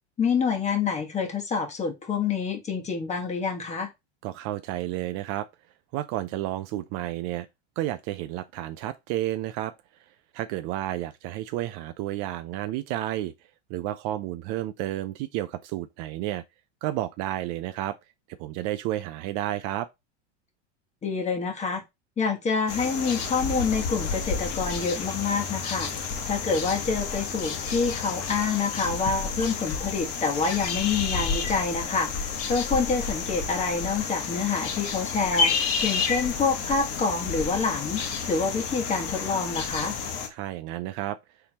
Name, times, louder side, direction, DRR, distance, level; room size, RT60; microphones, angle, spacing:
voice 1, 0.2-3.9 21.0-21.8 22.2-25.9 26.3-35.5 35.8-40.0, left 5 dB, 20° left, 1.2 m, -27 dB
voice 2, 4.2-5.5 5.9-7.5 7.8-9.7 10.3-13.3 13.7-16.4 16.8-18.0 18.4-19.9 40.3-41.2, right 14 dB, 45° right, 0.4 m, -31 dB
sound 1, 22.7-40.3, left 5 dB, 40° left, 1.2 m, -30 dB
4.5 x 3.5 x 2.8 m
supercardioid pair, 130°, 34 cm